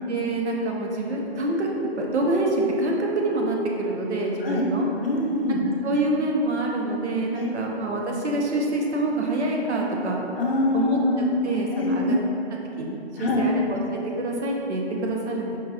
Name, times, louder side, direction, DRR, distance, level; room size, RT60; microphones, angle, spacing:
voice 1, 0.1-1.7 2.0-2.5 2.8-4.9 5.8-10.2 10.7-11.0 11.4-12.2 12.8-15.6, right 2 dB, 90° right, -1 dB, 0.7 m, -26 dB
voice 2, 5.0-5.6 7.3-7.5 10.4-11.3 11.7-12.2 13.2-13.5, left 2 dB, 60° left, -2 dB, 0.6 m, -24 dB
4.6 x 2.8 x 2.3 m, 2.9 s
hypercardioid pair, 175°, 33 cm